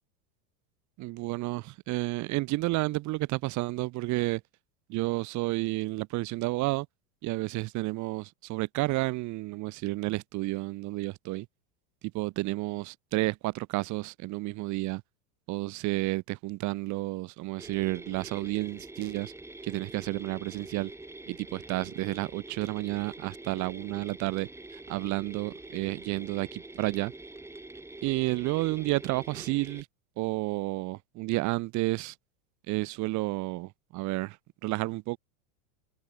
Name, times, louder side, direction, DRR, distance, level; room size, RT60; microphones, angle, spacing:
voice 1, 1.0-4.4 4.9-6.9 7.2-11.5 12.1-15.0 15.5-19.3 19.6-20.9 21.3-24.5 24.9-27.1 28.0-29.8 30.2-32.1 32.7-34.4 34.6-35.2, right 21 dB, 45° right, 1.6 m, -31 dB
sound 1, 17.6-29.8, right 2 dB, 5° right, 7.4 m, -45 dB
supercardioid pair, 135°, 41 cm